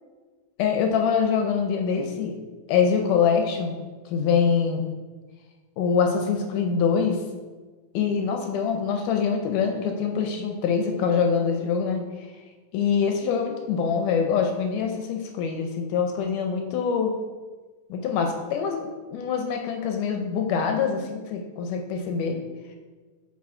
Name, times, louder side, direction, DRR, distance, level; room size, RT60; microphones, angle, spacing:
voice 1, 0.6-2.3 2.7-3.8 4.1-4.8 5.8-7.2 7.9-12.0 12.7-17.1 17.9-22.4, left 6 dB, 80° left, 3 dB, 1.9 m, -24 dB
6.0 x 4.1 x 4.3 m, 1.4 s
omnidirectional pair, 4.1 m